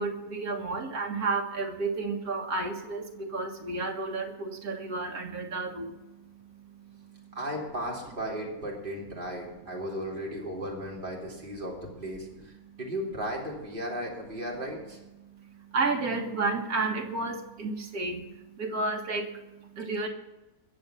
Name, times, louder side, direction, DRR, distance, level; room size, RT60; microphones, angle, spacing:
voice 1, 0.0-7.4 12.6-12.8 15.2-20.1, right 3 dB, 80° right, 2 dB, 2.1 m, -32 dB
voice 2, 7.3-15.0, equal, 35° right, -2 dB, 3.3 m, -35 dB
21.0 x 7.1 x 7.0 m, 1.0 s
omnidirectional pair, 1.5 m